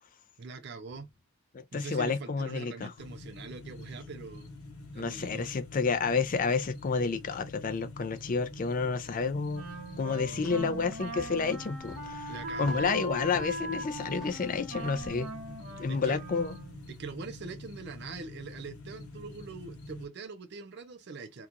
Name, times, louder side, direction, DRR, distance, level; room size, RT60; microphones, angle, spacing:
voice 1, 0.4-1.1 1.7-4.5 4.9-5.5 10.1-10.8 12.3-12.9 15.9-16.2 16.9-21.5, right 4 dB, 50° right, 0.5 m, -43 dB
voice 2, 1.5-2.9 4.9-9.7 10.0-12.3 12.6-15.3 15.8-16.6, left 4 dB, 40° left, 0.4 m, -30 dB
sound 1, 3.0-20.1, left 1 dB, 80° left, 1.1 m, -46 dB
sound 2, 8.2-17.1, left 1 dB, ahead, 1.0 m, -53 dB
Wind instrument woodwind instrument, 9.5-16.9, equal, 80° right, 1.4 m, -40 dB
2.9 x 2.3 x 3.7 m
head